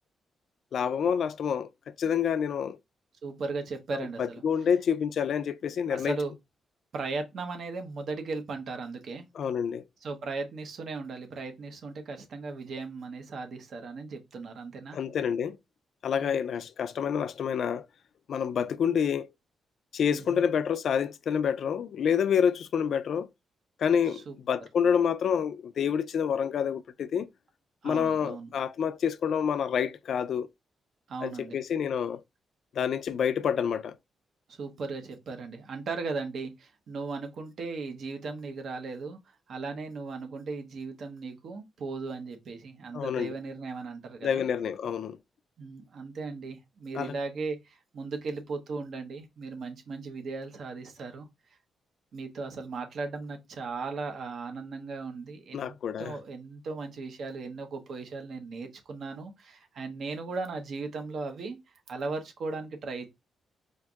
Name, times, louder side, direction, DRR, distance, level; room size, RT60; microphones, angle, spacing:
voice 1, 0.7-1.7 2.0-2.8 3.9-6.2 9.4-9.8 14.9-15.6 16.0-17.9 18.3-19.3 19.9-23.3 23.8-27.3 27.8-30.5 31.2-32.2 32.7-34.0 42.9-43.3 44.2-45.2 46.9-47.1 55.5-56.1, left 7 dB, 65° left, 0.3 m, -28 dB
voice 2, 3.2-4.4 5.9-6.3 6.9-9.2 10.0-15.0 16.2-16.4 20.1-20.4 24.1-24.3 27.8-28.5 31.1-31.6 34.5-39.2 39.5-44.4 45.6-51.3 52.1-61.6 61.9-63.1, right 4 dB, 60° right, 0.9 m, -37 dB
4.5 x 2.6 x 2.3 m
cardioid pair, 130°, 0 cm